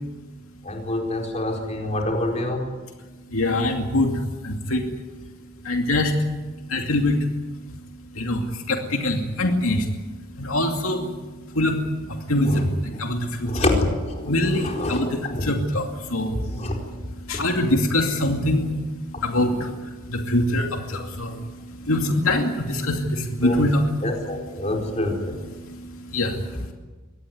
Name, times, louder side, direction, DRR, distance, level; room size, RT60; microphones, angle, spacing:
voice 1, 0.6-2.7 12.4-12.6 12.9-13.0 13.4-15.5 16.3-16.8 23.4-23.6 24.0-25.4, left 1 dB, 30° left, 1 dB, 4.5 m, -26 dB
voice 2, 3.3-4.9 5.6-6.1 6.7-7.3 8.1-9.9 10.4-11.2 11.5-11.8 12.3-13.8 14.2-18.9 19.2-26.7, left 1 dB, 75° left, 3 dB, 2.5 m, -24 dB
24.0 x 18.5 x 9.4 m, 1.2 s
head